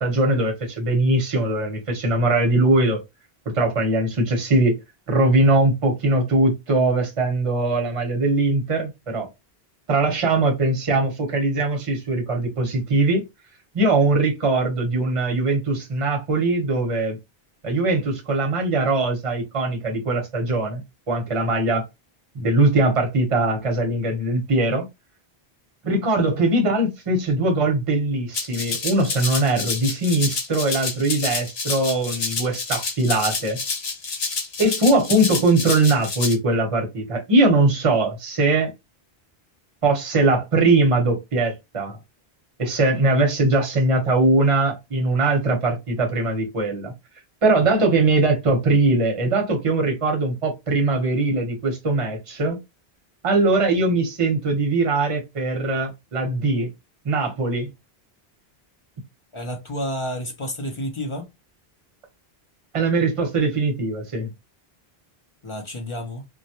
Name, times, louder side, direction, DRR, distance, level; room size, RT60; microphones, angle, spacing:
voice 1, 0.0-3.0 3.5-4.8 5.1-9.3 9.9-13.2 13.7-17.2 17.6-20.8 21.1-21.8 22.3-24.9 25.8-33.6 34.6-38.7 39.8-42.0 42.6-46.9 47.4-52.6 53.2-56.7 57.0-57.7 62.7-64.3, right 2 dB, 35° right, 0.8 m, -21 dB
Rattle (instrument), 28.3-36.3, left 4 dB, 80° left, 1.1 m, -28 dB
voice 2, 59.3-61.3 65.4-66.3, equal, 40° left, 0.5 m, -30 dB
2.2 x 2.1 x 2.7 m
omnidirectional pair, 1.0 m